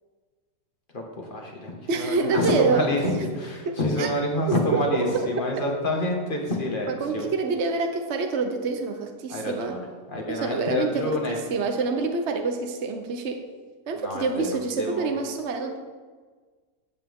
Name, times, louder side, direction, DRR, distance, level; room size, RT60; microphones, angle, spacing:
voice 1, 0.9-7.3 9.3-11.4 14.0-14.5 14.8-15.1, left 1 dB, 30° left, 0 dB, 1.9 m, -28 dB
voice 2, 1.9-2.9 3.6-4.1 4.5-5.6 6.9-9.8 10.3-13.4 13.9-15.8, right 4 dB, 50° right, 4 dB, 1.0 m, -27 dB
14.5 x 8.7 x 3.7 m, 1.5 s
omnidirectional pair, 1.8 m